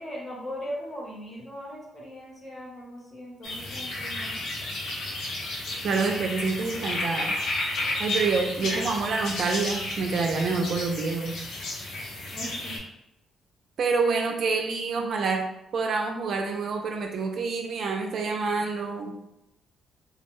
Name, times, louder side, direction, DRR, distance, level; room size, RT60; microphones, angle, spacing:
voice 1, 0.0-4.4 8.6-9.0 12.3-12.7, equal, 30° left, -4 dB, 1.0 m, -39 dB
sound 1, 3.4-12.8, left 2 dB, 75° left, 0.6 m, -32 dB
voice 2, 5.8-7.3 8.0-11.3 13.8-15.4 15.7-19.1, right 4 dB, 60° right, 2 dB, 0.4 m, -27 dB
2.3 x 2.1 x 3.1 m, 0.87 s
cardioid pair, 90°, 0 cm